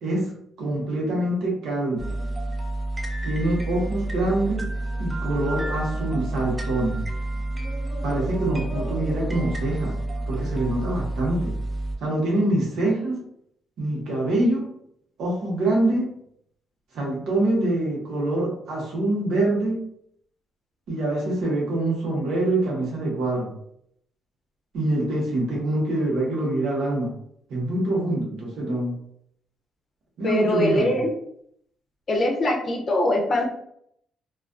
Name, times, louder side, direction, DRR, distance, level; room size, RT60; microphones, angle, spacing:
voice 1, 0.0-2.1 3.2-4.6 5.0-7.0 8.0-10.0 10.3-11.5 12.0-13.2 13.8-14.7 15.2-16.1 16.9-19.8 20.9-23.5 24.7-27.2 27.5-29.0 30.2-31.0, right 1 dB, 80° right, -2 dB, 0.9 m, -25 dB
sound 1, 2.0-12.0, right 1 dB, 15° right, 0.5 m, -29 dB
voice 2, 30.2-31.1 32.1-33.5, left 1 dB, 45° left, 1 dB, 0.6 m, -22 dB
2.4 x 2.2 x 2.5 m, 0.71 s
cardioid pair, 90°, 0 cm